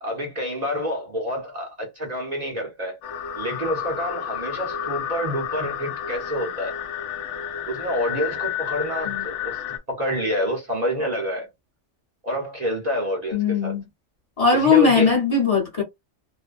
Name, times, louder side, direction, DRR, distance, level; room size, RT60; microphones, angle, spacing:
voice 1, 0.0-3.0 3.3-6.8 7.7-9.6 9.9-11.5 12.2-13.7 14.5-15.1, equal, 40° right, 0.7 m, -28 dB
sound 1, 3.0-9.8, left 9 dB, 75° left, 0.9 m, -31 dB
voice 2, 13.3-13.8 14.4-15.8, left 5 dB, 35° left, 0.9 m, -19 dB
2.5 x 2.1 x 2.4 m
omnidirectional pair, 1.2 m